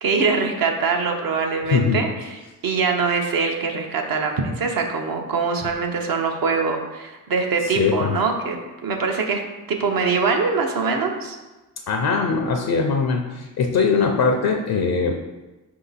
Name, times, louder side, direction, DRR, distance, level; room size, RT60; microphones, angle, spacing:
voice 1, 0.0-2.1 2.6-8.6 8.8-9.4 9.7-11.4, right 4 dB, 60° right, 2 dB, 0.8 m, -23 dB
voice 2, 1.7-2.0 7.6-8.2 11.9-15.1, left 5 dB, 65° left, 3 dB, 0.6 m, -21 dB
4.6 x 2.8 x 4.0 m, 1.1 s
cardioid pair, 75°, 40 cm